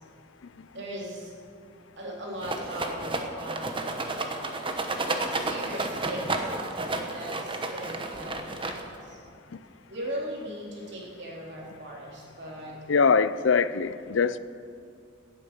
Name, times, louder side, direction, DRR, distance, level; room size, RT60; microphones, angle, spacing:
voice 1, 0.7-1.3 2.0-4.1 5.3-6.5 7.1-9.2 9.9-12.8, right 1 dB, 65° right, -3 dB, 3.6 m, -39 dB
Rattle, 2.4-9.1, right 2 dB, 25° right, 1.1 m, -31 dB
voice 2, 12.9-14.4, left 5 dB, 85° left, 15 dB, 0.5 m, -22 dB
17.5 x 8.6 x 6.7 m, 2.4 s
head